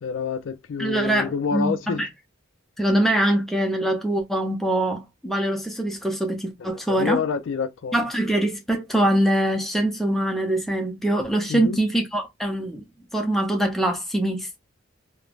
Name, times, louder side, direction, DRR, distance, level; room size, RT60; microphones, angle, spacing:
voice 1, 0.0-2.1 6.6-8.0 11.5-11.8, left 5 dB, 80° left, 0.4 m, -28 dB
voice 2, 0.8-2.1 2.8-7.2 7.9-12.8 13.1-14.6, right 1 dB, ahead, 0.5 m, -23 dB
3.1 x 2.1 x 2.4 m
head